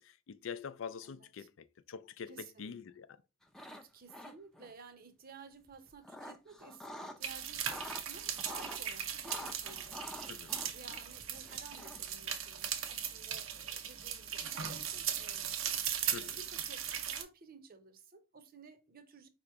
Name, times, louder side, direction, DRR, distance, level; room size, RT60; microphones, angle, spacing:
voice 1, 0.0-3.2 10.3-10.6 16.1-16.4, left 6 dB, 70° left, 0.4 m, -45 dB
voice 2, 1.0-1.5 2.3-2.7 3.7-10.0 10.7-15.6 16.0-19.3, right 4 dB, 45° right, 0.7 m, -55 dB
sound 1, 3.4-4.7 5.7-7.2 7.5-8.8 9.2-12.1, left 1 dB, 5° left, 0.4 m, -47 dB
sound 2, 7.2-17.2, right 9 dB, 80° right, 0.7 m, -38 dB
4.9 x 3.0 x 3.4 m
head